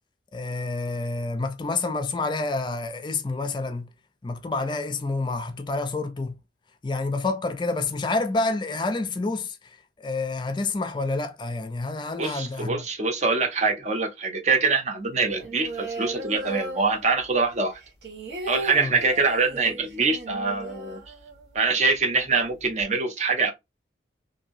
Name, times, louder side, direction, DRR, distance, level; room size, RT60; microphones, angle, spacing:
voice 1, 0.3-3.9 4.2-6.4 6.8-9.6 10.0-12.9 18.7-19.0, left 3 dB, 25° left, 0.4 m, -28 dB
voice 2, 12.2-17.7 18.5-21.0 21.5-23.5, right 4 dB, 40° right, 0.6 m, -24 dB
sound 1, 15.3-17.4 17.7-21.7 22.0-22.1 22.3-22.8, right 2 dB, 70° right, 1.3 m, -37 dB
2.9 x 2.6 x 2.5 m
head